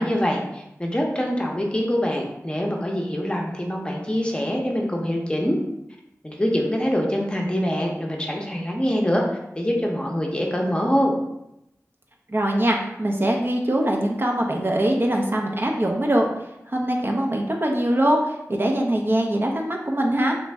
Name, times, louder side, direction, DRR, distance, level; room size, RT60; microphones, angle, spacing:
voice 1, 0.0-5.6 6.2-11.2, equal, 20° left, -1 dB, 0.7 m, -24 dB
voice 2, 12.3-16.3 16.7-20.4, right 1 dB, 40° right, 1 dB, 0.5 m, -22 dB
3.1 x 2.5 x 3.2 m, 0.85 s
wide cardioid pair, 45°, 6 cm